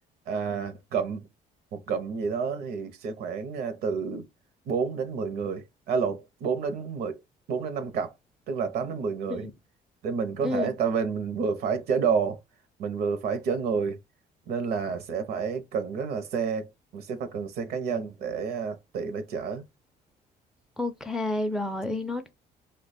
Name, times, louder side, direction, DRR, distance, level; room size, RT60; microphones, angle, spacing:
voice 1, 0.3-1.3 1.7-4.3 4.7-7.2 7.5-8.1 8.5-9.5 10.0-12.4 12.8-14.0 14.5-19.6, right 5 dB, 70° right, 0.6 m, -29 dB
voice 2, 20.8-22.3, left 2 dB, 5° right, 0.3 m, -29 dB
2.8 x 2.2 x 4.0 m
cardioid pair, 110°, 17 cm